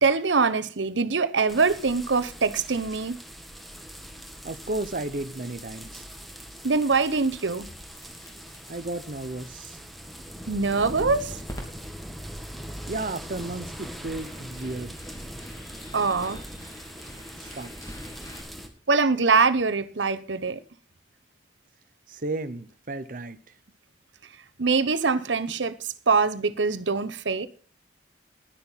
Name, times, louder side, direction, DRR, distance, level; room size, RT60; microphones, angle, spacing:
voice 1, 0.0-3.2 6.6-7.7 10.5-11.3 15.9-16.4 18.9-20.6 24.6-27.5, right 4 dB, 90° right, 0.9 m, -23 dB
sound 1, 1.5-18.7, equal, ahead, 1.7 m, -41 dB
voice 2, 4.4-6.0 8.3-8.4 8.7-9.8 12.9-15.0 17.4-17.7 22.1-23.4, right 2 dB, 50° right, 0.8 m, -33 dB
Crackle, 7.6-18.4, left 1 dB, 20° left, 3.3 m, -49 dB
11.5 x 10.0 x 5.7 m
head